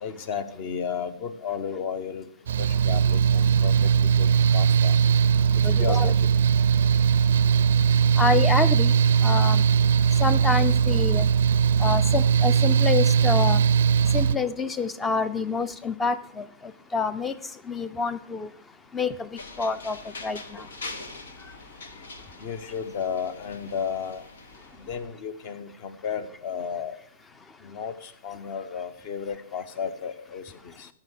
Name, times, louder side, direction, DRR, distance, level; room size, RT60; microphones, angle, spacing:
voice 1, 0.0-2.3 2.6-5.0 5.8-6.3 22.4-24.2 24.8-26.9 27.6-30.9, left 7 dB, 40° left, 1.0 m, -33 dB
Mechanical fan, 2.5-14.4, right 7 dB, 75° right, 0.4 m, -20 dB
voice 2, 5.6-6.1 8.2-8.9 9.2-9.6 10.2-11.3 11.8-13.6 14.1-17.3 17.7-18.5 18.9-19.3 19.6-20.0 20.2-20.6, left 4 dB, 10° left, 0.5 m, -27 dB
sound 1, 19.4-25.0, left 3 dB, 90° left, 1.7 m, -43 dB
14.5 x 5.8 x 6.4 m
hypercardioid pair, 155°, 0 cm